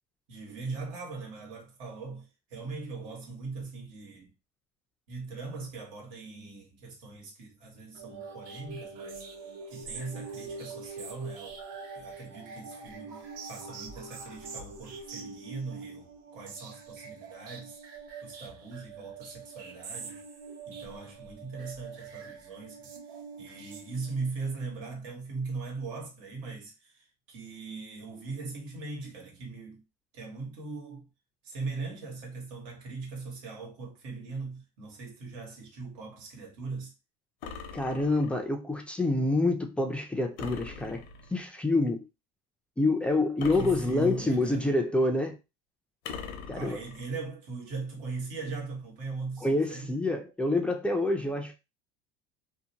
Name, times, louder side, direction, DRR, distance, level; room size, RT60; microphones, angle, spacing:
voice 1, 0.3-4.3 5.1-9.2 9.7-11.6 11.9-17.8 18.2-20.2 20.7-22.9 23.4-29.8 30.1-31.1 31.4-36.9 43.5-44.7 46.5-50.0, right 4 dB, 85° right, 1.3 m, -40 dB
sound 1, 8.0-24.4, right 4 dB, 60° right, 0.8 m, -44 dB
sound 2, 37.4-38.5 40.4-41.4 43.4-44.5 46.0-47.1, left 6 dB, 75° left, 0.6 m, -42 dB
voice 2, 37.7-41.0 41.3-42.1 42.8-45.4 46.5-46.8 49.4-51.6, left 2 dB, 5° left, 0.3 m, -27 dB
2.6 x 2.1 x 2.8 m
cardioid pair, 130°, 16 cm